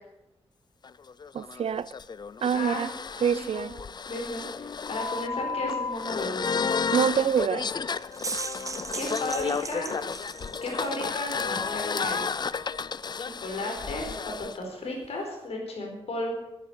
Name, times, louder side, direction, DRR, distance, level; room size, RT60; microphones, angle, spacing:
sound 1, 0.8-14.6, left 5 dB, 45° left, 0.5 m, -32 dB
voice 1, 1.3-1.9 2.4-2.9 3.2-3.7 6.9-7.7, right 8 dB, 70° right, 0.5 m, -25 dB
voice 2, 2.5-2.9 3.3-3.7 4.1-6.7 8.9-9.9 10.6-12.4 13.4-16.3, left 2 dB, 80° left, 4.5 m, -34 dB
sound 2, 8.0-11.0, right 4 dB, 30° right, 0.7 m, -37 dB
11.0 x 10.5 x 8.2 m
cardioid pair, 80°, 10 cm